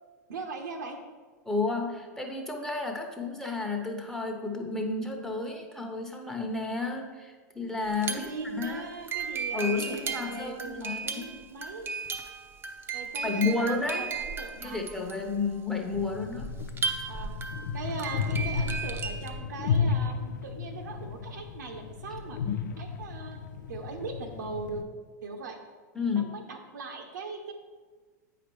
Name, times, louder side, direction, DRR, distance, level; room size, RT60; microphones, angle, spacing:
voice 1, 0.3-1.0 8.1-12.0 12.9-14.8 17.1-17.3 17.7-22.4 22.8-23.4 23.7-24.8 25.2-25.6 26.1-27.5, right 3 dB, 80° right, 4 dB, 1.0 m, -40 dB
voice 2, 1.4-8.9 9.5-11.5 13.2-14.1 14.6-16.5 22.4-22.7 25.9-26.3, left 3 dB, 5° left, 1 dB, 0.9 m, -31 dB
sound 1, 7.9-19.4, right 5 dB, 20° right, 0.7 m, -36 dB
sound 2, 15.9-24.8, left 6 dB, 80° left, 0.4 m, -33 dB
8.5 x 5.0 x 3.2 m, 1.4 s
hypercardioid pair, 100°, 10 cm